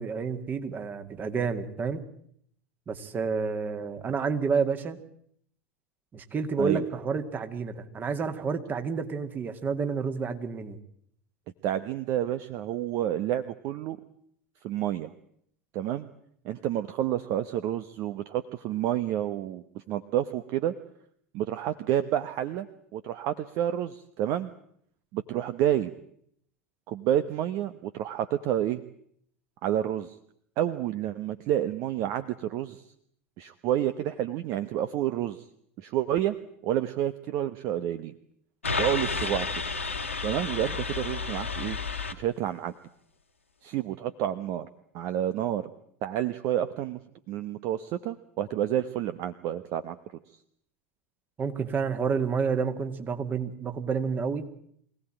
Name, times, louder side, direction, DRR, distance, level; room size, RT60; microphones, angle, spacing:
voice 1, 0.0-2.0 2.9-5.0 6.1-10.8 51.4-54.5, right 5 dB, 25° right, 8 dB, 2.2 m, -29 dB
voice 2, 11.6-14.0 14.6-15.1 15.7-16.1 16.4-20.7 21.3-22.7 22.9-24.5 25.1-25.9 26.9-28.8 29.6-30.2 30.6-32.8 33.4-35.4 35.8-36.3 36.6-38.1 38.8-39.5 40.2-41.8 42.1-42.7 43.6-44.7 44.9-45.7 46.0-47.0 47.3-50.0, right 11 dB, 45° right, 11 dB, 1.0 m, -29 dB
sound 1, 38.6-42.1, left 4 dB, 80° left, 2.0 m, -31 dB
24.5 x 17.5 x 8.9 m, 0.69 s
figure-of-eight pair, 80°, 7 cm